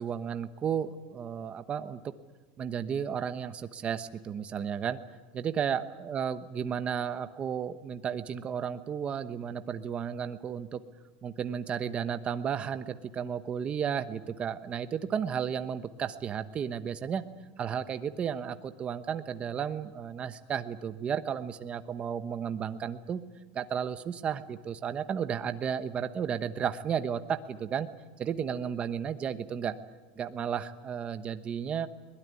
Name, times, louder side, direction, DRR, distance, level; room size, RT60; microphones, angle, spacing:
voice 1, 0.0-2.0 2.6-5.0 5.3-10.8 11.2-17.2 17.6-23.2 23.5-27.9 28.2-29.7 30.2-31.9, right 8 dB, 20° right, 10 dB, 1.0 m, -33 dB
22.0 x 21.0 x 9.7 m, 1.2 s
supercardioid pair, 170°, 5 cm